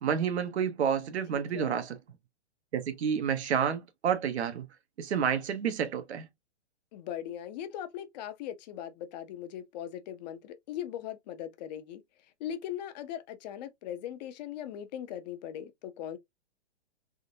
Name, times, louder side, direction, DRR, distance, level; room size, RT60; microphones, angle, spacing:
voice 1, 0.0-2.0 2.7-4.6 5.0-6.3, right 8 dB, 75° right, 0.9 m, -29 dB
voice 2, 1.3-1.8 6.9-12.0 12.4-16.2, left 10 dB, 40° left, 0.6 m, -39 dB
3.7 x 2.6 x 2.6 m
hypercardioid pair, 140°, 33 cm